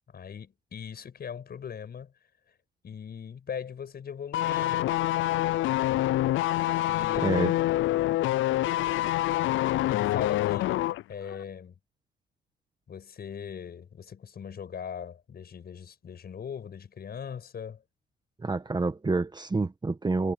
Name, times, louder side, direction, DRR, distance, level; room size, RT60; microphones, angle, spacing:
voice 1, 0.1-2.1 2.8-5.0 6.8-7.5 9.9-11.7 12.9-17.8, left 7 dB, 50° left, 6.3 m, -40 dB
sound 1, 4.3-11.0 11.3-11.4, left 15 dB, 80° left, 0.5 m, -26 dB
voice 2, 7.2-7.5 18.4-20.3, right 3 dB, 20° right, 1.5 m, -28 dB
cardioid pair, 90°, 20 cm